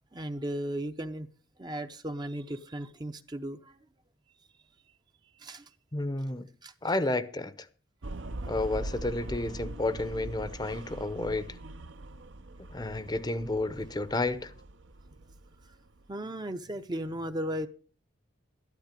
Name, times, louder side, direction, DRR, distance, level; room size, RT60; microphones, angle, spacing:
voice 1, 0.1-1.3 1.6-3.8 5.4-5.7 6.6-6.7 16.1-17.7, right 1 dB, 20° right, 0.6 m, -36 dB
voice 2, 5.9-6.5 6.8-7.5 8.4-11.5 12.7-14.5, left 2 dB, 20° left, 0.7 m, -31 dB
sound 1, 8.0-16.1, right 2 dB, 65° right, 0.7 m, -42 dB
13.0 x 12.0 x 5.2 m
head